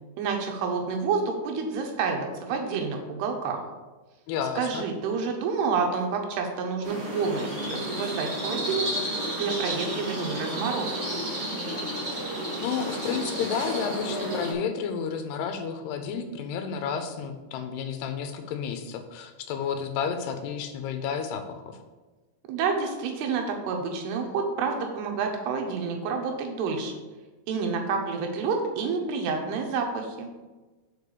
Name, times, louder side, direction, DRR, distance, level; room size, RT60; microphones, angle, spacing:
voice 1, 0.2-3.6 4.6-8.9 9.4-11.0 22.5-26.9 27.5-30.3, right 5 dB, 80° right, 3 dB, 3.1 m, -29 dB
voice 2, 4.3-4.9 12.1-12.2 12.6-21.8, left 7 dB, 85° left, 7 dB, 2.8 m, -31 dB
sound 1, 6.8-14.5, right 1 dB, 25° right, 1.7 m, -32 dB
6.7 x 5.4 x 6.7 m, 1.2 s
omnidirectional pair, 4.7 m